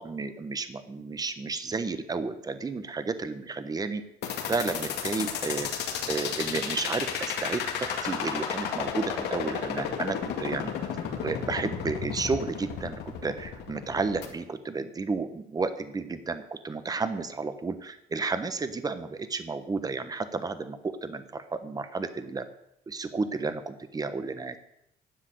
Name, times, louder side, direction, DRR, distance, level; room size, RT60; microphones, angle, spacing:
voice 1, 0.0-4.0 4.5-5.7 6.1-10.7 11.2-22.5 22.9-24.6, right 4 dB, 20° right, 11 dB, 1.1 m, -32 dB
sound 1, 4.2-14.3, left 8 dB, 80° left, 2.2 m, -32 dB
10.0 x 7.4 x 9.3 m, 0.79 s
cardioid pair, 110°, 17 cm